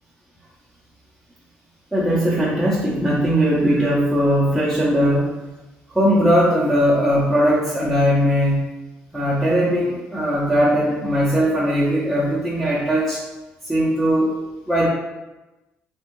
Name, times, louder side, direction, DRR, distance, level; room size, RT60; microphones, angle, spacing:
voice 1, 1.9-5.3 5.9-8.6 9.1-13.2 13.6-14.3 14.7-14.9, equal, ahead, -9 dB, 0.7 m, -19 dB
2.8 x 2.2 x 2.9 m, 1.1 s
cardioid pair, 85°, 4 cm